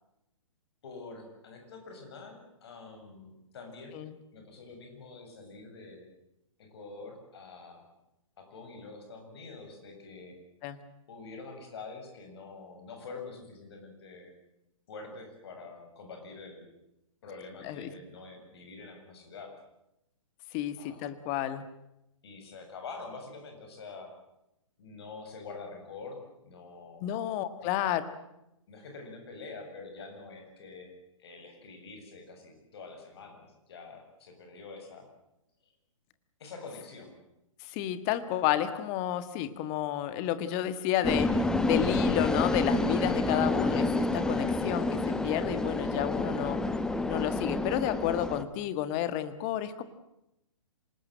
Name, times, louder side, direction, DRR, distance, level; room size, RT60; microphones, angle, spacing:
voice 1, 0.8-4.0 4.3-6.1 6.6-7.9 8.4-10.3 11.1-14.3 14.9-16.7 17.2-19.5 20.8-21.1 22.2-24.1 24.8-27.1 27.6-27.9 28.7-30.9 31.2-35.1 35.6-35.7 36.4-37.1 43.3-43.4 46.3-46.5, left 4 dB, 50° left, 4 dB, 7.3 m, -46 dB
voice 2, 20.5-21.6 27.0-28.0 37.6-41.3 41.6-46.6 47.1-49.8, left 12 dB, 30° left, 12 dB, 1.7 m, -31 dB
sound 1, 41.0-48.4, left 2 dB, 5° left, 1.0 m, -28 dB
26.5 x 19.0 x 7.9 m, 0.87 s
figure-of-eight pair, 120°, 17 cm